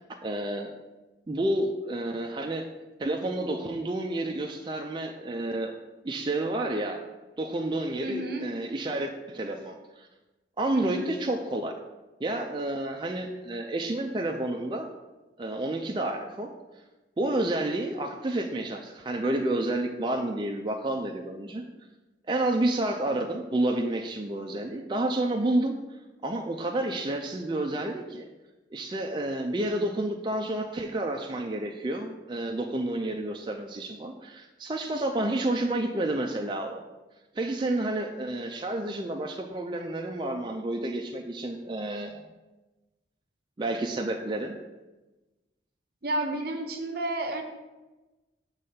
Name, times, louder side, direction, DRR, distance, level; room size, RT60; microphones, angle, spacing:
voice 1, 0.2-0.7 1.3-2.7 3.0-5.8 6.0-7.0 7.4-10.1 10.6-11.7 12.2-14.9 15.4-16.5 17.2-21.6 22.3-25.7 26.2-28.3 28.7-36.8 37.3-42.3 43.6-44.6, right 1 dB, 25° right, 2 dB, 0.4 m, -30 dB
voice 2, 8.0-8.5 10.7-11.1 46.0-47.4, right 1 dB, 55° right, 4 dB, 0.8 m, -31 dB
6.9 x 3.3 x 5.5 m, 1.1 s
head